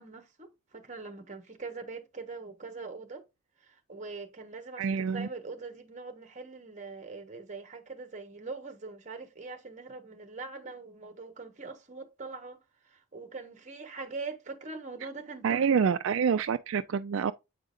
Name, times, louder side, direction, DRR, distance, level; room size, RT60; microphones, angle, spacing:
voice 1, 0.0-3.2 3.6-12.6 12.8-16.0, right 4 dB, 35° right, 1.2 m, -42 dB
voice 2, 4.8-5.3 15.4-17.3, right 6 dB, 65° right, 0.3 m, -27 dB
8.2 x 5.0 x 2.6 m
head